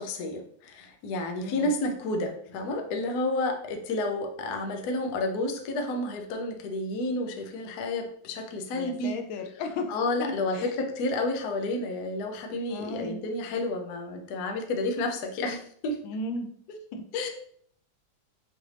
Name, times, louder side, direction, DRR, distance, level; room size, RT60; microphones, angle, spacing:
voice 1, 0.0-9.2 9.9-16.0 16.7-16.8 17.1-17.3, left 2 dB, 65° left, 3 dB, 1.0 m, -30 dB
voice 2, 8.7-9.9 10.2-10.7 12.7-13.2 16.0-16.5 16.9-17.0, left 2 dB, 80° left, 5 dB, 1.4 m, -35 dB
6.0 x 2.6 x 3.2 m, 0.62 s
omnidirectional pair, 2.2 m